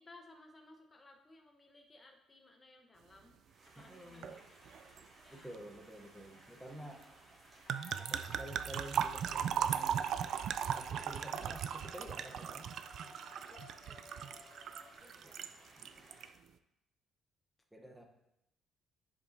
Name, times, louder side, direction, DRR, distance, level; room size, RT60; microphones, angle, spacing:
voice 1, 0.0-3.4 3.6-4.4 5.2-5.6 13.5-14.1 15.0-15.4, left 2 dB, 20° left, 2 dB, 0.9 m, -60 dB
sound 1, 3.4-16.3, right 2 dB, 40° right, 1.9 m, -61 dB
voice 2, 3.8-4.4 5.3-7.1 8.0-10.2 10.7-12.7 14.3-14.4 15.2-15.3 15.8-16.1 17.7-18.0, right 1 dB, 5° right, 2 dB, 0.9 m, -50 dB
sound 2, 4.2-4.4 4.7-5.0 7.7-15.5 15.8-16.3, right 8 dB, 60° right, 0.3 m, -37 dB
sound 3, 7.6-15.0, left 3 dB, 50° left, 2.5 m, -58 dB
10.0 x 5.0 x 2.7 m, 0.86 s
cardioid pair, 125°, 0 cm